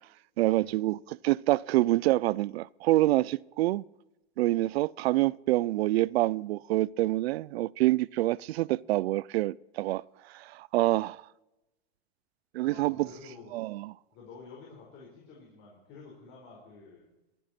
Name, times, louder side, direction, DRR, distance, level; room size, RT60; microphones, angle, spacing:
voice 1, 0.4-3.8 4.4-10.0 10.3-11.2 12.5-13.1 13.5-13.9, right 17 dB, 85° right, 0.5 m, -26 dB
voice 2, 12.6-13.5 14.1-17.1, left 4 dB, 40° left, 4.4 m, -50 dB
24.0 x 10.0 x 4.3 m
supercardioid pair, 150°, 30 cm